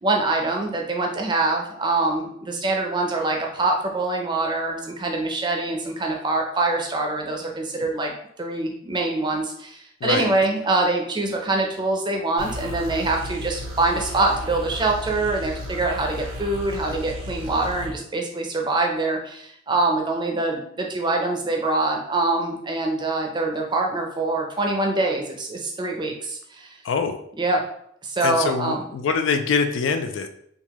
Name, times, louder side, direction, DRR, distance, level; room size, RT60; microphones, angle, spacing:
voice 1, 0.0-8.1 8.4-26.7 27.4-27.6 28.0-28.9, right 2 dB, 25° right, 1 dB, 0.5 m, -24 dB
voice 2, 10.0-10.3 26.8-27.2 28.2-30.3, left 5 dB, 70° left, 7 dB, 0.3 m, -24 dB
sound 1, 12.4-17.9, equal, 85° right, 0.8 m, -34 dB
3.7 x 2.7 x 2.9 m, 0.69 s
head